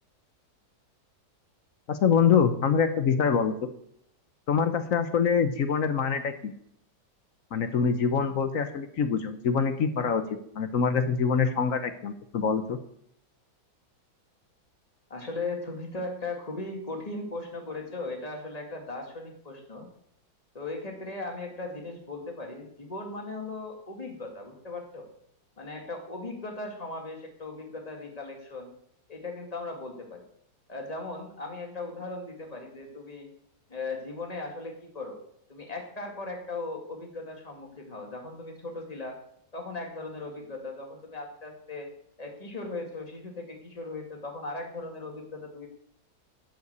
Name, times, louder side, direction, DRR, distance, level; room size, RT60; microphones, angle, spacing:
voice 1, 1.9-3.5 4.5-6.5 7.5-10.2 10.5-12.8, left 6 dB, 55° left, 9 dB, 1.0 m, -25 dB
voice 2, 15.1-19.9 20.5-25.1 25.6-28.7 29.1-30.2 30.7-33.3 33.7-35.2 35.5-39.2 39.5-41.9 42.2-45.7, left 2 dB, 20° left, 2 dB, 2.2 m, -38 dB
11.5 x 5.8 x 8.1 m, 0.70 s
omnidirectional pair, 2.1 m